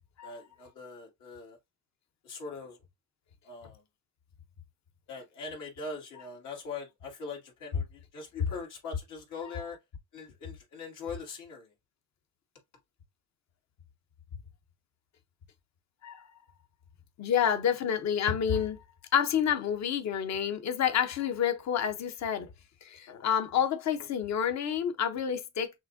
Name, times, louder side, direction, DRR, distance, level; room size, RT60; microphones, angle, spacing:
voice 1, 0.2-1.6 2.2-2.8 3.4-3.8 5.1-9.8 10.1-11.7, left 4 dB, 85° left, 2.2 m, -42 dB
voice 2, 17.2-18.8 19.1-22.5 22.8-25.7, left 8 dB, 65° left, 0.9 m, -29 dB
6.2 x 2.5 x 2.6 m
cardioid pair, 90°, 30 cm